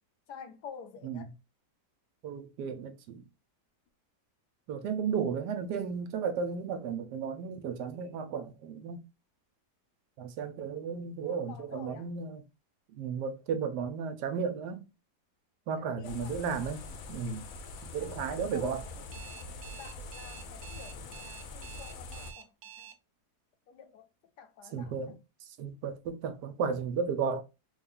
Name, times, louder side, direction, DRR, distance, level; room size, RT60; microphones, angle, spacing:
voice 1, 0.3-1.3 11.2-12.1 15.8-16.4 18.0-22.5 22.8-22.9 23.7-24.1 24.4-25.2, left 6 dB, 85° left, 1.2 m, -50 dB
voice 2, 2.2-3.3 4.7-9.0 10.2-12.4 12.9-14.9 15.7-16.8 17.1-17.4 17.9-18.8 24.7-25.1 25.6-27.4, right 6 dB, 90° right, 1.2 m, -34 dB
sound 1, 16.0-22.3, left 3 dB, 65° left, 0.9 m, -44 dB
Alarm, 19.1-22.9, right 10 dB, 70° right, 1.0 m, -48 dB
3.4 x 2.4 x 3.5 m
omnidirectional pair, 1.8 m